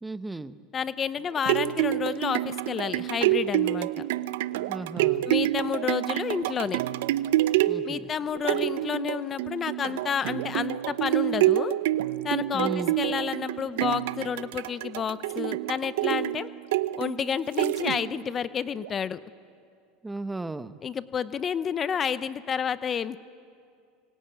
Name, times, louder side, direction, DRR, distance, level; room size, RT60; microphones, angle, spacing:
voice 1, 0.0-0.6 4.7-5.2 7.7-8.0 12.5-12.9 20.0-20.8, right 2 dB, 10° right, 13 dB, 1.0 m, -35 dB
voice 2, 0.7-3.9 5.3-6.8 7.8-11.7 12.2-16.5 17.0-19.2 20.8-23.2, left 7 dB, 35° left, 15 dB, 0.8 m, -30 dB
sound 1, 1.2-18.3 18.8-18.9, right 15 dB, 80° right, 0.7 m, -27 dB
26.5 x 24.0 x 9.2 m, 2.3 s
supercardioid pair, 100°, 0 cm